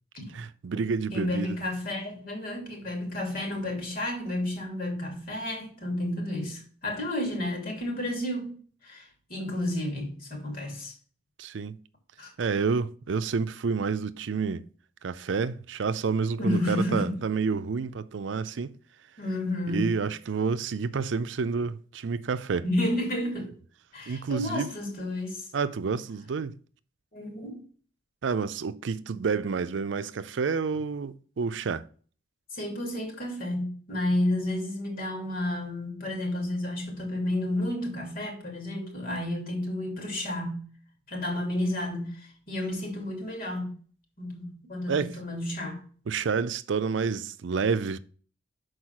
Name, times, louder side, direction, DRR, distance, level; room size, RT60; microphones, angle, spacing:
voice 1, 0.3-1.6 11.4-11.8 12.4-14.7 15.0-18.8 19.7-22.6 24.1-24.7 25.5-26.6 28.2-31.8 44.9-45.2 46.1-48.0, right 5 dB, 90° right, 0.5 m, -29 dB
voice 2, 1.1-8.5 8.8-10.9 12.2-12.3 16.4-17.1 19.2-19.9 22.6-23.5 23.9-25.5 27.1-27.6 32.5-40.7 41.1-43.8 44.2-45.8, left 1 dB, 50° left, 2.8 m, -31 dB
6.4 x 4.7 x 5.8 m
head